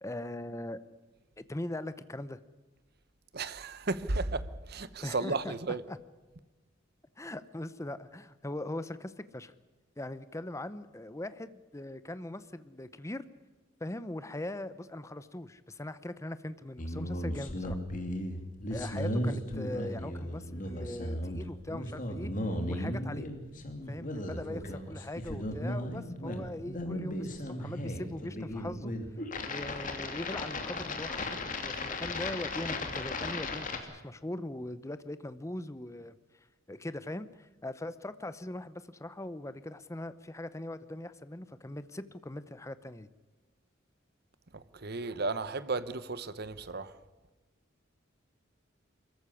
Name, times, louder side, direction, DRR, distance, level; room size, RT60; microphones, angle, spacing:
voice 1, 0.0-0.8 1.4-2.4 5.0-5.5 5.9-6.0 7.2-9.5 10.0-13.2 13.8-17.8 18.7-23.3 23.9-28.9 29.4-36.1 36.7-43.1, left 1 dB, 15° left, 0.7 m, -40 dB
voice 2, 3.3-5.8 44.5-47.0, right 3 dB, 55° right, 1.1 m, -34 dB
sound 1, 16.8-33.8, left 1 dB, 40° left, 2.7 m, -36 dB
23.0 x 14.5 x 9.9 m
head